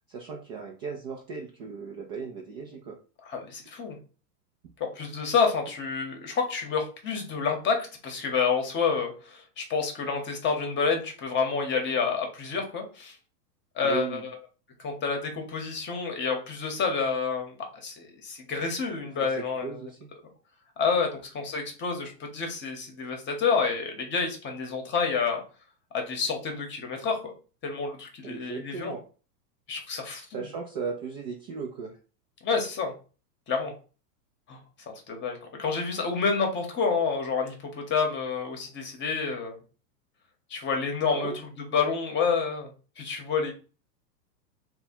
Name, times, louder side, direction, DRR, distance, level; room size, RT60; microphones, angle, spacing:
voice 1, 0.1-3.0 13.8-14.2 19.2-20.1 28.2-29.0 30.3-31.9 41.1-41.4, right 5 dB, 30° right, 1 dB, 0.4 m, -36 dB
voice 2, 3.2-4.0 4.8-7.8 8.0-13.1 13.7-14.4 14.8-17.6 17.8-19.9 20.8-25.4 25.9-27.2 27.6-28.9 29.7-30.4 32.4-32.9 33.5-33.7 34.5-34.6 35.1-39.6 40.5-42.7 43.0-43.5, left 5 dB, 20° left, 3 dB, 0.9 m, -28 dB
3.4 x 2.2 x 4.2 m, 0.36 s
hypercardioid pair, 125°, 50 cm